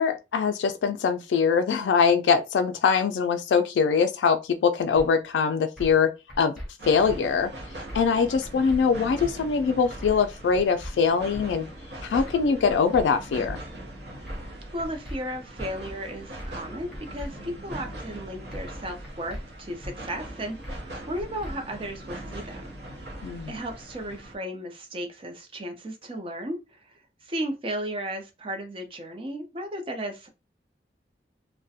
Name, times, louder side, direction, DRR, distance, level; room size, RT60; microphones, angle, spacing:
voice 1, 0.0-6.1 6.4-6.6 6.9-7.5 7.9-11.7 12.0-13.6 23.2-23.5, left 6 dB, 90° left, 0.3 m, -23 dB
sound 1, 5.0-5.1 5.8-6.0 6.3-6.7 7.1-7.2 7.9-8.2 8.4-8.8 9.2-9.3 10.0-10.3 10.5-10.9 11.3-11.5 12.1-12.4 12.7-13.0 13.4-13.6 14.3-14.5 14.8-15.2 15.6-15.7 16.4-16.7 16.9-17.3 17.7-17.8 18.5-18.8 19.0-19.4 19.8-19.9 20.6-20.9 21.2-21.5, equal, ahead, 0.7 m, -38 dB
sound 2, 6.8-24.3, right 1 dB, 70° right, 0.6 m, -41 dB
voice 2, 14.7-22.7 23.5-30.3, right 1 dB, 30° right, 0.4 m, -35 dB
2.3 x 2.1 x 2.7 m
head